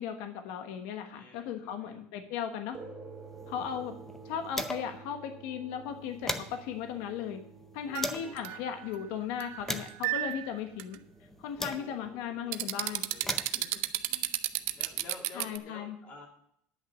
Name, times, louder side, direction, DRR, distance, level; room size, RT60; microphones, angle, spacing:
voice 1, 0.0-2.8 3.5-3.9 4.2-7.4 7.7-11.0 11.4-13.1 15.3-16.0, left 8 dB, 70° left, 6 dB, 1.3 m, -37 dB
voice 2, 1.1-2.0 3.4-3.8 7.8-8.5 11.6-16.3, left 3 dB, 35° left, 0 dB, 2.8 m, -52 dB
sound 1, 2.7-11.5, right 4 dB, 20° right, 1.0 m, -51 dB
sound 2, 3.3-5.1 5.4-5.5 5.8-8.4 9.0-12.2 12.9-15.1, left 1 dB, 5° left, 0.7 m, -41 dB
sound 3, 7.9-9.0 9.4-10.5 10.8-10.9 12.5-15.6, right 17 dB, 60° right, 0.6 m, -31 dB
10.5 x 6.0 x 7.4 m, 0.69 s
cardioid pair, 160°, 5 cm